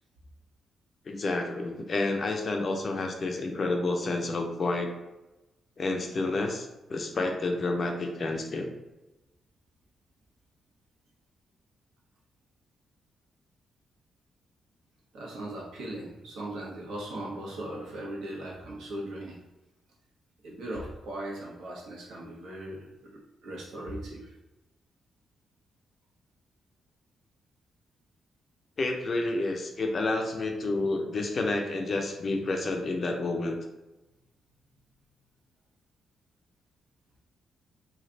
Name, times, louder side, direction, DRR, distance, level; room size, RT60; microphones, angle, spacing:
voice 1, 1.1-4.9 5.8-8.7 28.8-33.6, left 2 dB, 35° left, 3 dB, 0.5 m, -29 dB
voice 2, 15.1-19.4 20.4-24.3, right 1 dB, 85° right, -3 dB, 1.1 m, -39 dB
3.2 x 2.4 x 3.8 m, 1.0 s
wide cardioid pair, 160°, 0 cm